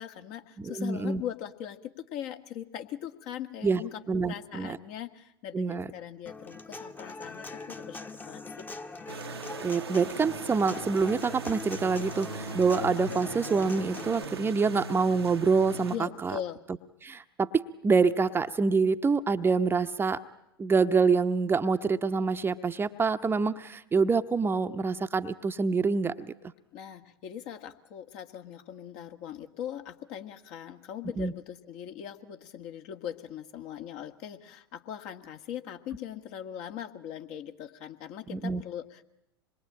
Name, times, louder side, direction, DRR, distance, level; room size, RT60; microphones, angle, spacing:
voice 1, 0.0-8.7 15.9-16.6 26.7-39.0, left 10 dB, 50° left, 7 dB, 1.7 m, -40 dB
voice 2, 0.6-1.2 3.6-3.8 4.1-4.8 5.5-5.9 9.3-16.4 17.0-20.2 20.6-26.3 31.2-31.3 38.3-38.6, right 4 dB, 15° right, 9 dB, 0.9 m, -26 dB
Human voice / Acoustic guitar, 6.3-14.2, left 3 dB, 15° left, 1.2 m, -42 dB
sound 1, 9.1-16.0, right 4 dB, 85° right, 1.1 m, -39 dB
26.0 x 21.5 x 8.6 m, 0.85 s
figure-of-eight pair, 90°, 13 cm